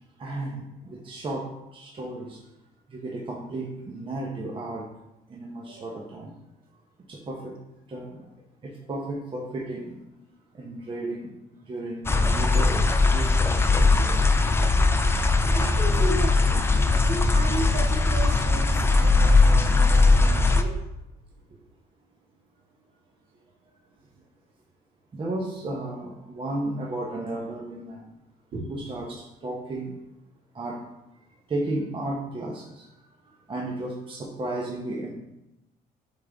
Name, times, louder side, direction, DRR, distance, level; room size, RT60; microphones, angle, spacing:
voice 1, 0.2-2.4 2.9-4.9 5.3-6.3 7.1-7.6 7.9-8.2 8.6-10.0 10.5-11.3 11.7-14.4 25.1-28.0 28.7-30.0 30.5-30.8 31.5-32.9 33.5-35.1, right 2 dB, 30° right, -1 dB, 0.9 m, -34 dB
sound 1, 12.1-20.6, left 3 dB, 15° left, 0.5 m, -20 dB
voice 2, 15.5-20.7 28.5-28.6, right 2 dB, 60° right, -4 dB, 2.1 m, -35 dB
8.4 x 3.7 x 3.5 m, 0.91 s
cardioid pair, 110°, 17 cm